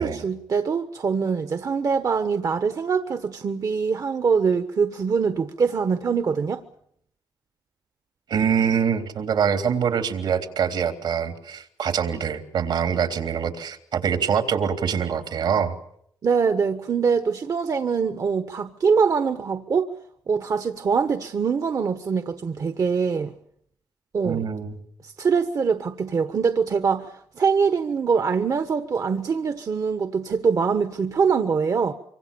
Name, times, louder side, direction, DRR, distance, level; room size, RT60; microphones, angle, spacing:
voice 1, 0.0-6.6 16.2-19.9 20.3-23.3 24.1-24.5 25.0-31.9, right 5 dB, 50° right, 1.4 m, -23 dB
voice 2, 8.3-15.7 24.2-24.8, right 7 dB, 75° right, 3.5 m, -24 dB
25.5 x 25.0 x 7.0 m
cardioid pair, 75°, 8 cm